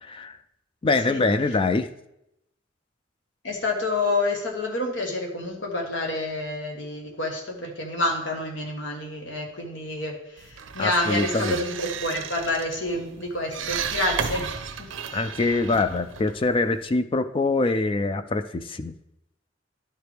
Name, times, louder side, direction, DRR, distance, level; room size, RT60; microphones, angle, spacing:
voice 1, 0.0-0.4 0.8-1.9 10.8-11.6 15.1-18.9, left 3 dB, 30° left, 11 dB, 0.3 m, -24 dB
voice 2, 3.4-14.9, left 2 dB, 70° left, 1 dB, 1.4 m, -28 dB
sound 1, 10.4-16.9, right 7 dB, 85° right, 0.6 m, -34 dB
11.5 x 4.6 x 3.4 m, 0.83 s
head